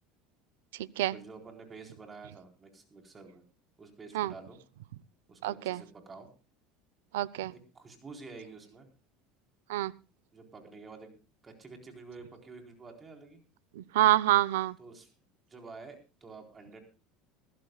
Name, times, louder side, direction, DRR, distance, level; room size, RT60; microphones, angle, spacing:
voice 1, 1.1-3.4 3.8-4.6 5.3-6.3 7.7-8.9 10.3-11.2 11.4-13.4 14.8-15.1 15.5-16.8, right 4 dB, 25° right, 4 dB, 4.1 m, -49 dB
voice 2, 5.4-5.8 7.1-7.5 9.7-9.9 13.8-14.7, right 15 dB, 90° right, 20 dB, 0.7 m, -26 dB
21.0 x 15.0 x 2.3 m, 0.31 s
supercardioid pair, 110°, 0 cm